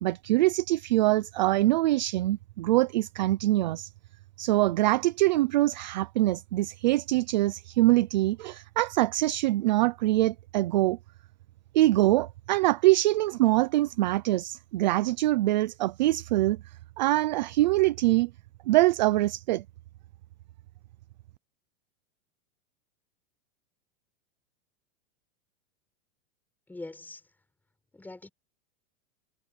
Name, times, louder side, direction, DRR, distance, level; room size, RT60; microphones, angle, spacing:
voice 1, 0.0-3.9 4.4-11.0 11.7-16.6 17.0-18.3 18.7-19.6, right 17 dB, 35° right, 0.5 m, -24 dB
voice 2, 26.7-27.2 27.9-28.3, left 2 dB, 5° left, 6.1 m, -42 dB
supercardioid pair, 170°, 40 cm